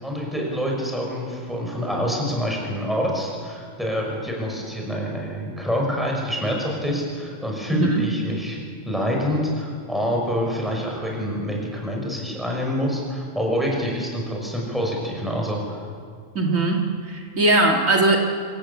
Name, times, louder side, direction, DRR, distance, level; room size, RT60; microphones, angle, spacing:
voice 1, 0.0-8.6 8.9-15.8, equal, ahead, -1 dB, 5.7 m, -26 dB
voice 2, 7.7-8.0 16.3-16.8 17.0-18.2, right 2 dB, 65° right, 0 dB, 2.4 m, -19 dB
27.0 x 15.0 x 8.3 m, 2.2 s
omnidirectional pair, 1.5 m